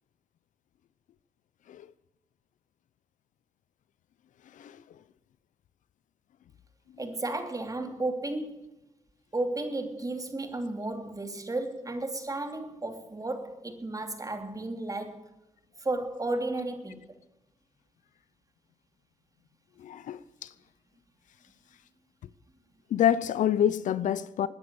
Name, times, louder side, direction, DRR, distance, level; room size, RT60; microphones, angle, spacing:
voice 1, 7.0-8.7 9.3-15.2 15.8-17.1, right 2 dB, 25° right, 2.9 m, -33 dB
voice 2, 19.8-20.5 22.9-24.5, left 10 dB, 85° left, 0.7 m, -27 dB
19.0 x 9.9 x 7.0 m
cardioid pair, 65°, 13 cm